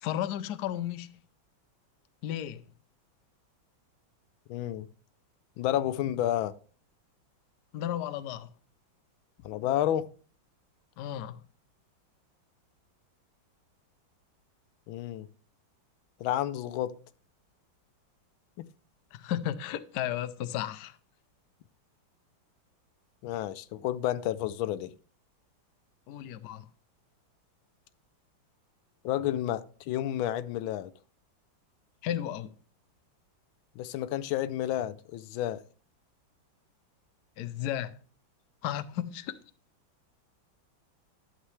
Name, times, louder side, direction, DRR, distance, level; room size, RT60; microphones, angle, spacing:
voice 1, 0.0-1.1 2.2-2.6 7.7-8.5 11.0-11.4 19.1-21.0 26.1-26.7 32.0-32.5 37.4-37.9 38.6-39.4, left 11 dB, 70° left, 1.0 m, -34 dB
voice 2, 4.5-4.9 5.6-6.5 9.4-10.1 14.9-15.3 16.2-16.9 18.6-18.7 23.2-24.9 29.0-30.9 33.8-35.6, left 12 dB, 90° left, 1.4 m, -30 dB
11.5 x 7.6 x 3.2 m
omnidirectional pair, 2.2 m